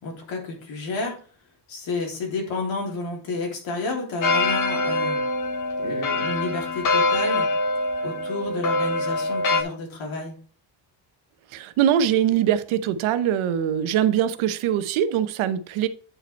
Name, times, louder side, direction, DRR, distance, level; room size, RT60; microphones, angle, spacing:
voice 1, 0.0-1.2 1.7-5.2 5.8-7.5 8.0-10.3, left 3 dB, 70° left, 0 dB, 3.3 m, -30 dB
sound 1, 4.2-9.6, left 2 dB, 40° left, 0.9 m, -24 dB
voice 2, 11.5-15.9, right 10 dB, 85° right, 12 dB, 0.9 m, -22 dB
8.9 x 5.1 x 4.4 m, 0.41 s
cardioid pair, 170°, 47 cm